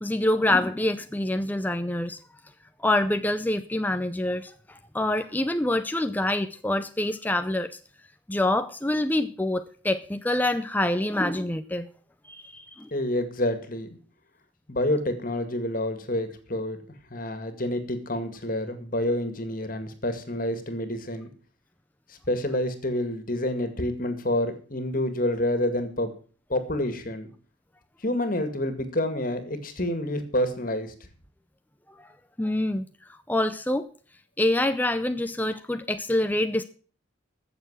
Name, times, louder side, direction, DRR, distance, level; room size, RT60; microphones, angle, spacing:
voice 1, 0.0-2.2 2.8-7.8 8.3-11.9 12.2-12.9 31.9-32.1 32.4-32.8 33.1-33.9 34.4-36.6, left 1 dB, 10° left, 9 dB, 0.5 m, -26 dB
voice 2, 12.9-14.0 14.7-16.8 17.1-21.3 22.1-26.1 26.5-27.3 28.0-30.9, left 1 dB, 45° left, 10 dB, 2.1 m, -28 dB
15.0 x 6.9 x 7.4 m, 0.41 s
head